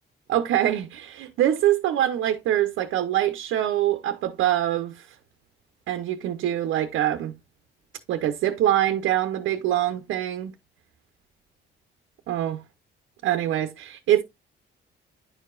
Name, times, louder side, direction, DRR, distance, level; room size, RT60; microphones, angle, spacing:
voice 1, 0.3-5.1 5.9-7.3 8.1-10.5 12.3-12.6 13.2-14.2, right 12 dB, 85° right, 0.7 m, -24 dB
10.0 x 4.7 x 2.4 m
cardioid pair, 90°, 20 cm